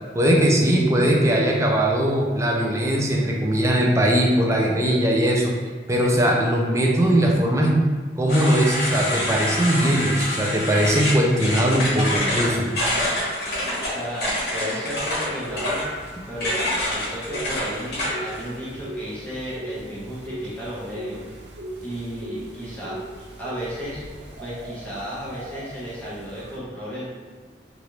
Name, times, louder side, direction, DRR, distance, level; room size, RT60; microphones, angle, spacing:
voice 1, 0.1-5.5 5.9-7.9 8.2-12.7, right 1 dB, 15° right, -1 dB, 0.4 m, -20 dB
sound 1, 8.3-18.4, left 1 dB, 65° left, 1.1 m, -26 dB
voice 2, 13.9-15.9 16.3-21.2 21.8-23.0 23.4-24.0 24.4-27.1, equal, 10° left, -9 dB, 1.0 m, -33 dB
sound 2, 15.5-26.6, right 1 dB, 80° right, 0.5 m, -38 dB
3.2 x 2.5 x 2.9 m, 1.5 s
head